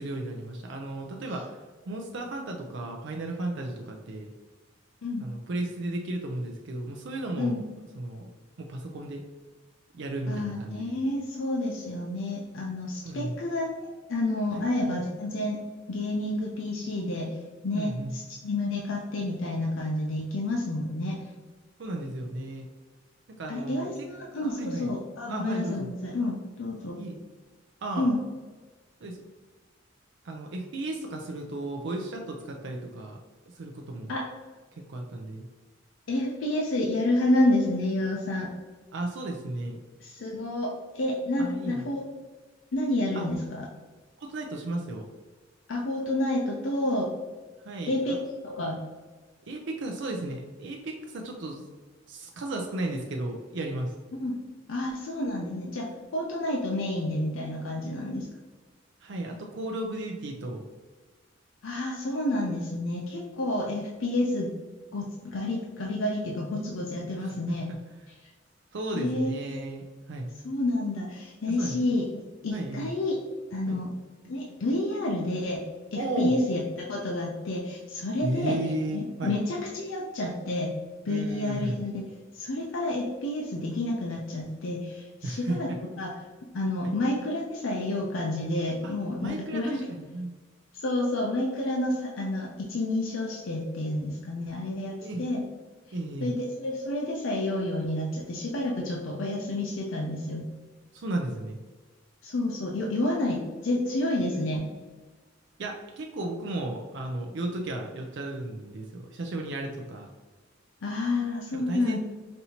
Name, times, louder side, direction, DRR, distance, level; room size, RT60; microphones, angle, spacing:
voice 1, 0.0-1.6 1.9-4.3 5.2-7.6 8.0-8.3 8.6-9.2 9.9-11.0 13.0-13.3 14.5-14.7 17.7-18.1 21.8-22.7 23.4-23.9 24.4-24.9 25.3-25.9 27.0-27.2 27.8-28.1 29.0-29.2 30.2-33.2 33.5-34.1 34.8-35.5 38.9-39.8 41.4-41.9 43.1-43.3 44.2-45.1 47.6-48.2 49.5-51.6 52.1-53.9 59.0-60.6 67.2-67.8 68.7-70.3 71.4-71.7 72.5-72.9 73.7-73.8 76.0-76.4 78.2-79.3 81.1-81.8 85.2-85.8 86.8-87.0 88.8-88.9 89.2-90.3 95.0-95.3 95.9-96.3 100.9-101.6 105.6-110.1 111.5-112.0, right 2 dB, 65° right, 2 dB, 0.5 m, -34 dB
voice 2, 10.3-15.6 15.9-17.4 17.6-21.2 23.5-27.0 28.0-28.2 34.1-34.2 36.1-38.5 40.0-42.0 42.7-43.7 45.7-47.1 47.9-48.8 54.2-54.3 54.7-58.3 61.6-64.5 64.9-67.7 68.9-69.3 70.4-72.0 72.4-73.2 73.5-73.9 74.2-75.6 75.9-78.6 78.9-80.7 81.0-82.0 82.3-85.7 86.0-86.1 86.5-89.8 90.7-95.4 96.2-100.5 102.2-104.7 110.8-112.0, left 1 dB, 85° left, -1 dB, 0.5 m, -29 dB
5.3 x 2.7 x 2.8 m, 1.3 s
head